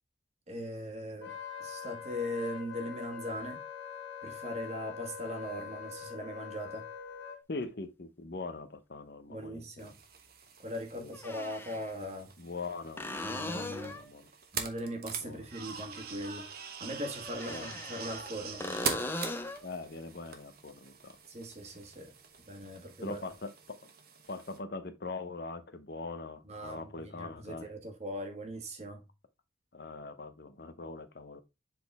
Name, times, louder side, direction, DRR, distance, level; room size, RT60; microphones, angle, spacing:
voice 1, 0.5-3.6 4.2-6.9 9.3-9.9 10.6-12.3 13.2-14.0 14.5-16.5 16.8-18.7 21.3-22.1 22.5-23.2 26.5-29.0, equal, 35° right, 1.6 m, -40 dB
Wind instrument woodwind instrument, 1.2-7.4, left 7 dB, 75° left, 1.5 m, -43 dB
voice 2, 7.5-9.9 11.0-11.2 12.4-13.1 13.4-14.3 15.2-15.5 17.5-17.8 19.6-21.2 23.0-23.9 24.3-27.7 29.7-31.4, left 3 dB, 55° left, 0.8 m, -42 dB
sound 1, 7.6-7.7 9.8-9.9 11.1-11.9 13.0-14.1 17.2-18.3 18.6-19.7 23.3-23.4, left 2 dB, 10° left, 0.6 m, -38 dB
sound 2, 9.8-24.6, right 6 dB, 50° right, 1.1 m, -43 dB
7.4 x 4.2 x 3.4 m
head